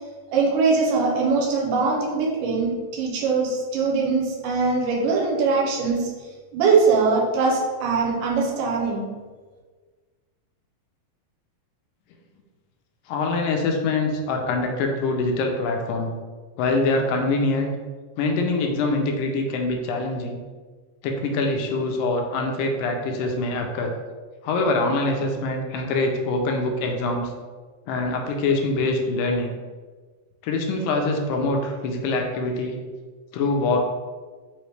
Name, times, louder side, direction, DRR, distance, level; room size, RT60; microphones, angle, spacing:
voice 1, 0.3-6.1 6.5-9.1, right 4 dB, 80° right, -2 dB, 2.3 m, -22 dB
voice 2, 13.1-16.1 16.6-17.7 18.2-20.4 21.0-23.9 24.4-27.3 27.9-29.5 30.4-32.8 33.3-33.8, left 2 dB, 85° left, 3 dB, 2.3 m, -24 dB
5.4 x 3.0 x 3.2 m, 1.4 s
omnidirectional pair, 3.9 m